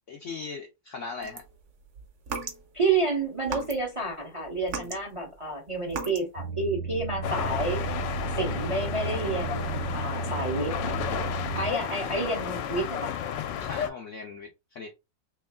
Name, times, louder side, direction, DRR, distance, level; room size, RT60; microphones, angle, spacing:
voice 1, 0.1-1.4 13.6-14.9, left 4 dB, 70° left, 0.7 m, -39 dB
sound 1, 1.2-2.9 3.4-4.1 4.4-6.4, right 5 dB, 50° right, 0.9 m, -37 dB
voice 2, 2.7-7.8 8.4-11.0 11.5-13.1, right 3 dB, 35° right, 0.5 m, -29 dB
sound 2, 6.4-11.7, right 5 dB, 80° right, 1.2 m, -34 dB
sound 3, 7.2-13.9, left 9 dB, 85° left, 1.2 m, -32 dB
3.1 x 3.0 x 3.5 m
omnidirectional pair, 1.9 m